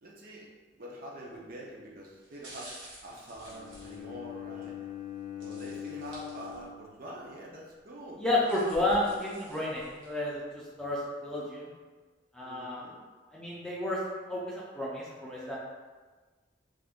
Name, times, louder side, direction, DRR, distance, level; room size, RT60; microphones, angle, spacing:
voice 1, 0.0-4.8 5.4-8.2 8.7-9.2 12.4-13.0, right 1 dB, 45° right, -3 dB, 0.5 m, -45 dB
sound 1, 1.2-1.5 2.2-4.7 5.4-6.9 7.2-7.3 8.1-10.3 10.8-10.9, right 1 dB, 85° right, 1.1 m, -51 dB
Bowed string instrument, 3.5-7.6, left 10 dB, 85° left, 0.5 m, -43 dB
voice 2, 8.2-11.7 12.3-12.9 13.3-14.0 14.3-15.6, left 1 dB, 5° left, -7 dB, 0.4 m, -31 dB
2.5 x 2.4 x 3.5 m, 1.4 s
head